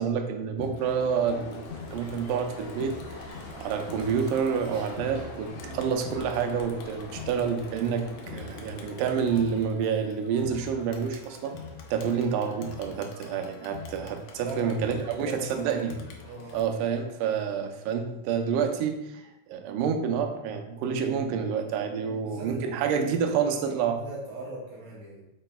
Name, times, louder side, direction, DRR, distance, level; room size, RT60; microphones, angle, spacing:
voice 1, 0.0-1.7 1.9-3.0 3.6-11.6 11.9-16.0 16.5-19.2 19.5-24.0, right 7 dB, 85° right, 5 dB, 2.3 m, -28 dB
Crowd, 0.6-16.6, left 6 dB, 80° left, 1.5 m, -45 dB
sound 1, 0.8-9.6, left 2 dB, 60° left, 1.8 m, -44 dB
sound 2, 1.7-7.5, equal, 25° left, 1.9 m, -50 dB
voice 2, 8.1-8.5 14.4-15.8 16.2-16.6 21.9-25.3, right 2 dB, 70° right, -4 dB, 2.1 m, -40 dB
7.7 x 6.9 x 2.3 m, 0.91 s
omnidirectional pair, 3.8 m